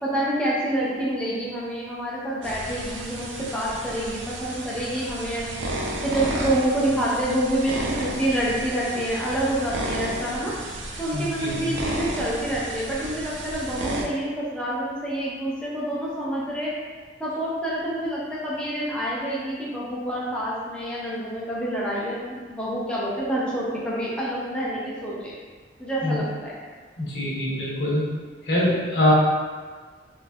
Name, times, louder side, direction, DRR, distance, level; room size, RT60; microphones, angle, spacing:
voice 1, 0.0-5.7 6.0-10.5 11.0-16.7 17.2-25.3 25.8-26.5, right 1 dB, 5° left, -7 dB, 0.5 m, -27 dB
sound 1, 2.4-14.0, right 1 dB, 85° right, 0.4 m, -33 dB
voice 2, 11.1-11.7 26.0-26.2 27.0-28.0 28.5-29.1, left 1 dB, 65° left, -7 dB, 0.9 m, -23 dB
3.1 x 2.6 x 2.2 m, 1.5 s
head